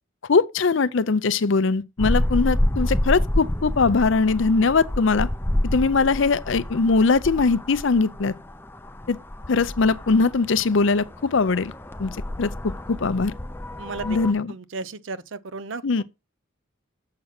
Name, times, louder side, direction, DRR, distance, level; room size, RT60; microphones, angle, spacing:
voice 1, 0.3-5.3 5.7-8.3 9.1-9.2 9.5-11.7 12.0-12.1 12.4-13.3 14.0-14.5 15.8-16.0, left 4 dB, 65° left, 0.6 m, -21 dB
sound 1, 2.0-14.3, left 1 dB, 10° left, 0.5 m, -29 dB
voice 2, 13.8-14.2 14.5-15.8, right 4 dB, 65° right, 0.6 m, -34 dB
7.5 x 6.0 x 5.9 m
head